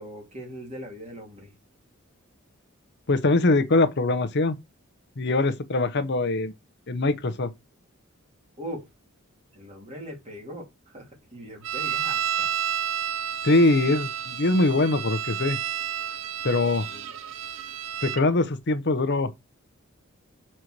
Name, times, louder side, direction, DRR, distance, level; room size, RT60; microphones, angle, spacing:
voice 1, 0.0-1.5 8.6-8.9 9.5-12.5 16.9-17.1, equal, 35° right, 2.9 m, -40 dB
voice 2, 3.1-4.6 5.2-6.5 6.9-7.5 13.4-15.6 16.4-16.9 18.0-19.3, left 2 dB, 55° left, 0.9 m, -22 dB
sound 1, 11.6-18.2, right 9 dB, 70° right, 0.8 m, -31 dB
6.4 x 4.4 x 4.6 m
head